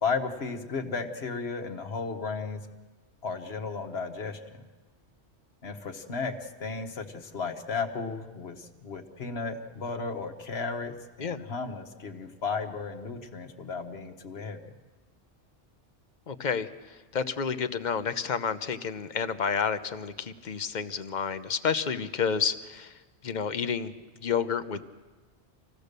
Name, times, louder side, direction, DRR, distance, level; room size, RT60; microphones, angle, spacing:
voice 1, 0.0-2.6 3.2-4.4 5.6-14.7, left 4 dB, 60° left, 6 dB, 1.5 m, -34 dB
voice 2, 16.3-16.7 17.1-22.9 23.2-23.9 24.2-24.9, left 6 dB, 45° left, 11 dB, 0.8 m, -30 dB
26.0 x 16.0 x 6.7 m, 1.3 s
omnidirectional pair, 1.2 m